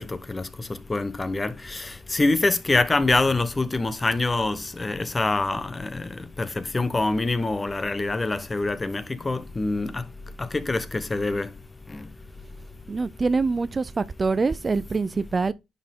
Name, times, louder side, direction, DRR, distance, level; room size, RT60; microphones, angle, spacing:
voice 1, 0.0-10.0 10.4-11.5 11.9-12.1, left 2 dB, 20° left, 0.9 m, -25 dB
voice 2, 12.9-15.5, right 4 dB, 30° right, 0.4 m, -25 dB
10.0 x 4.5 x 3.6 m
cardioid pair, 90°, 0 cm